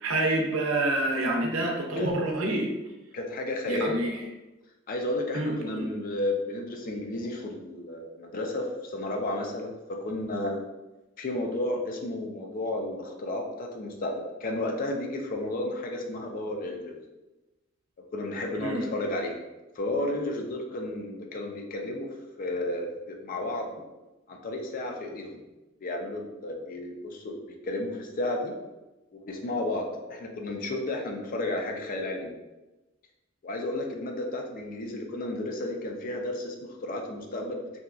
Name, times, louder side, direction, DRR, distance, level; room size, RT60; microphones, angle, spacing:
voice 1, 0.0-2.7 3.7-4.2 5.3-5.9 18.6-18.8, right 1 dB, 75° right, 1 dB, 0.5 m, -27 dB
voice 2, 3.1-4.0 4.9-10.6 11.2-17.0 18.1-19.4 19.8-22.1 22.4-23.7 24.3-25.4 25.8-28.5 29.3-32.3 33.4-37.6, left 1 dB, 45° left, 2 dB, 0.4 m, -32 dB
2.7 x 2.3 x 2.3 m, 1.1 s
head